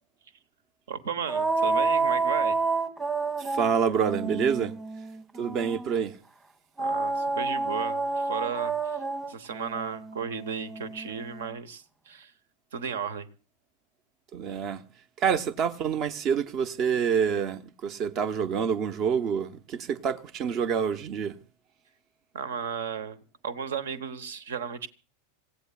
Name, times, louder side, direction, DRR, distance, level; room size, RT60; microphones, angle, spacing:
voice 1, 0.9-2.6 6.8-9.0 9.3-12.3 12.7-13.3 22.3-24.9, right 7 dB, 60° right, 1.1 m, -34 dB
sound 1, 1.3-5.9 6.8-11.5, right 3 dB, 15° right, 1.6 m, -29 dB
voice 2, 3.4-4.7 5.4-6.2 14.3-14.8 15.2-21.4, right 7 dB, 35° right, 0.9 m, -27 dB
26.5 x 16.0 x 2.4 m
figure-of-eight pair, 90°, 0 cm